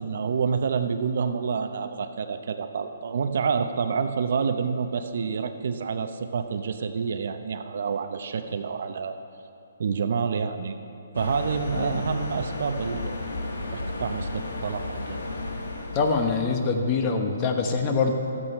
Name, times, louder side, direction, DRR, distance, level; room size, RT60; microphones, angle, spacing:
voice 1, 0.0-9.2 9.8-10.8 11.1-13.2 13.7-15.2, right 6 dB, 60° right, 8 dB, 0.7 m, -28 dB
sound 1, 11.1-16.7, left 2 dB, 85° left, 1.6 m, -33 dB
voice 2, 15.9-18.1, left 4 dB, 30° left, 4 dB, 1.1 m, -24 dB
13.5 x 8.7 x 5.5 m, 2.9 s
hypercardioid pair, 150°, 0 cm